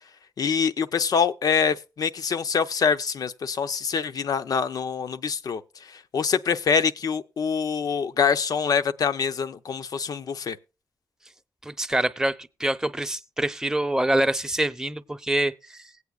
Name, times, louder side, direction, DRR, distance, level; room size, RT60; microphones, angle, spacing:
voice 1, 0.4-5.6 5.9-10.6, left 6 dB, 65° left, 0.6 m, -25 dB
voice 2, 11.6-15.8, right 1 dB, 10° right, 0.7 m, -25 dB
19.5 x 8.3 x 2.4 m
cardioid pair, 65°, 7 cm